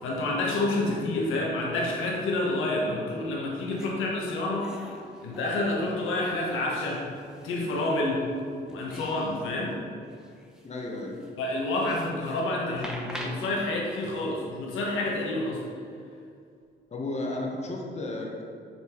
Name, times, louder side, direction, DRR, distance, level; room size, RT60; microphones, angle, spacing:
voice 1, 0.0-4.9 5.2-7.0 7.4-8.2 8.7-9.7 11.4-15.6, left 2 dB, 85° left, -3 dB, 1.5 m, -28 dB
sound 1, 3.5-3.9 4.6-8.0 8.4-9.4 9.7-9.8 10.1-14.3, right 1 dB, 5° right, 1.0 m, -45 dB
voice 2, 10.6-11.1 16.9-18.5, left 2 dB, 35° left, -1 dB, 1.2 m, -33 dB
7.1 x 4.4 x 4.5 m, 2.3 s
cardioid pair, 90°, 20 cm